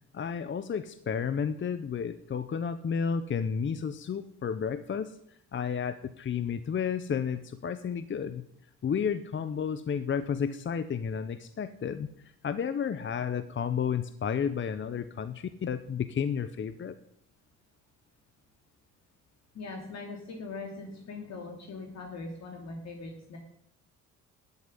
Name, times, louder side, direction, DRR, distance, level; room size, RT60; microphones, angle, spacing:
voice 1, 0.1-8.4 8.8-12.1 12.4-17.0, left 7 dB, 40° left, 12 dB, 0.8 m, -32 dB
voice 2, 19.5-23.4, left 3 dB, 60° left, 1 dB, 2.9 m, -41 dB
13.0 x 8.0 x 9.9 m, 0.74 s
cardioid pair, 90°, 30 cm